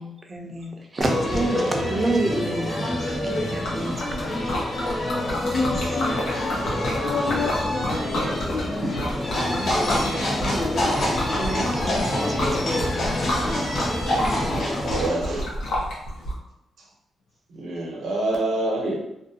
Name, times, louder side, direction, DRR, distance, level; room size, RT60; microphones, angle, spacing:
voice 1, 0.0-4.6 10.5-10.7 11.3-13.7, right 2 dB, 30° right, 2 dB, 0.5 m, -30 dB
sound 1, 1.0-15.1, left 1 dB, 30° left, 0.6 m, -27 dB
Liquid, 3.1-16.3, left 1 dB, 90° left, 0.8 m, -30 dB
voice 2, 5.5-7.9, left 4 dB, 70° left, -1 dB, 0.4 m, -29 dB
voice 3, 8.1-8.9 14.4-15.4 17.5-19.0, right 2 dB, 75° right, -2 dB, 0.7 m, -28 dB
sound 2, 9.3-15.1, left 1 dB, 55° left, 1.1 m, -28 dB
2.5 x 2.2 x 2.6 m, 0.87 s
cardioid pair, 95°, 0 cm